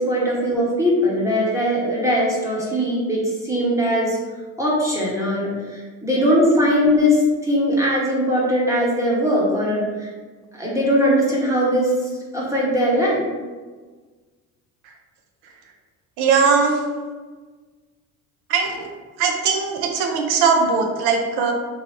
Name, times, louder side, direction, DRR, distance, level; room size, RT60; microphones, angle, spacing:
voice 1, 0.0-4.2 4.6-10.1 10.5-13.2, equal, 5° right, -6 dB, 1.0 m, -20 dB
voice 2, 16.2-16.8 18.5-18.9 19.2-21.5, right 5 dB, 60° right, 2 dB, 0.6 m, -19 dB
3.0 x 2.3 x 3.1 m, 1.4 s
hypercardioid pair, 60°, 44 cm